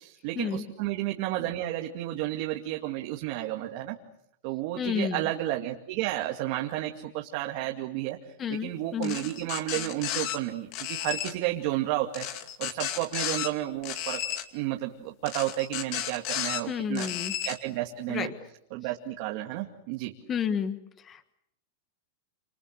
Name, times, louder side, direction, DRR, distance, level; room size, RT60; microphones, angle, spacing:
voice 1, 0.2-4.0 4.4-8.2 8.5-12.3 12.6-14.2 14.5-17.1 17.4-18.3 18.7-20.1, right 15 dB, 45° right, 1 dB, 2.3 m, -32 dB
voice 2, 4.8-5.2 8.4-9.2 16.7-17.3 18.1-18.3 20.3-20.8 21.0-21.3, left 7 dB, 20° left, 11 dB, 1.4 m, -31 dB
sound 1, 9.0-10.4 10.7-11.3 12.1-13.5 13.8-14.4 15.3-16.6 16.9-17.6, left 11 dB, 40° left, 2.3 m, -33 dB
28.5 x 28.0 x 6.7 m, 0.74 s
supercardioid pair, 160°, 0 cm